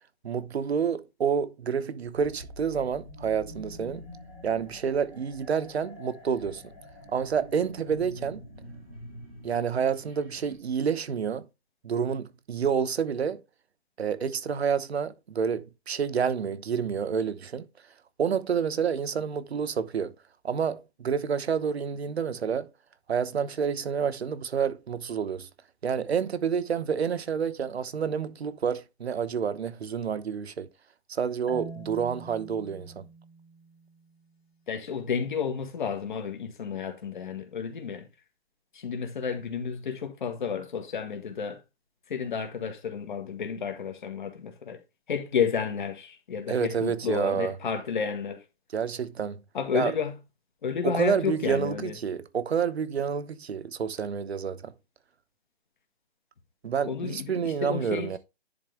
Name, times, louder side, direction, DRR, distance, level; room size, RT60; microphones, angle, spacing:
voice 1, 0.2-4.0 4.4-6.6 7.1-8.4 9.4-11.4 11.8-13.4 14.0-17.7 18.2-20.1 20.4-22.7 23.1-25.5 25.8-30.7 31.1-33.1 46.5-47.6 48.7-49.4 49.7-49.9 50.8-54.7 56.6-58.2, right 7 dB, 70° right, 1.0 m, -29 dB
sound 1, 2.1-10.5, equal, 5° left, 0.5 m, -46 dB
Marimba xylophone, 31.5-34.5, right 2 dB, 65° left, 2.6 m, -45 dB
voice 2, 34.7-38.1 38.7-41.6 42.1-44.8 45.1-48.4 49.5-50.2 50.6-51.9 56.9-58.2, left 6 dB, 45° left, 1.9 m, -31 dB
10.5 x 4.1 x 3.5 m
hypercardioid pair, 165°, 33 cm